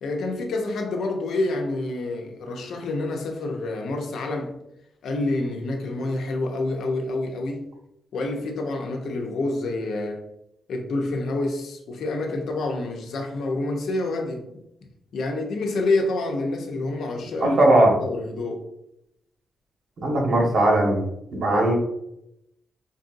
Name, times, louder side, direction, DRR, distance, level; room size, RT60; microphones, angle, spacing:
voice 1, 0.0-4.5 5.0-7.7 8.1-10.3 10.7-14.4 15.1-17.6 18.0-18.7, left 2 dB, 80° left, 2 dB, 0.8 m, -27 dB
voice 2, 17.4-18.0 20.0-21.0 21.3-21.7, right 1 dB, 60° right, -1 dB, 1.3 m, -18 dB
5.3 x 2.6 x 2.6 m, 0.79 s
cardioid pair, 85°, 0 cm